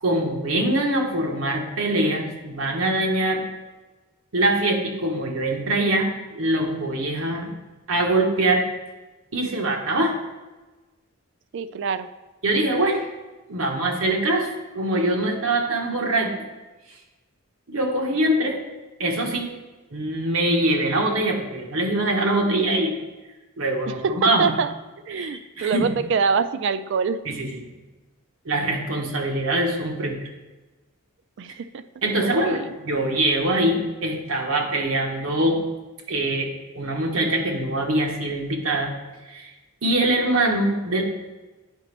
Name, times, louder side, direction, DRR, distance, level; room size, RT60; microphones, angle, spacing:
voice 1, 0.0-3.4 4.3-7.5 7.9-8.7 9.3-10.2 12.4-13.1 13.5-16.3 17.7-18.6 19.0-19.5 19.9-22.9 23.6-24.5 25.1-25.9 27.3-27.7 28.4-30.2 32.0-35.6 36.1-38.9 39.3-39.5 39.8-41.0, right 1 dB, 70° right, 1 dB, 1.1 m, -23 dB
voice 2, 11.5-12.1 24.0-24.7 25.1-27.2 31.4-31.8 32.2-32.7, right 5 dB, 55° right, 12 dB, 0.3 m, -25 dB
8.8 x 5.0 x 3.3 m, 1.2 s
head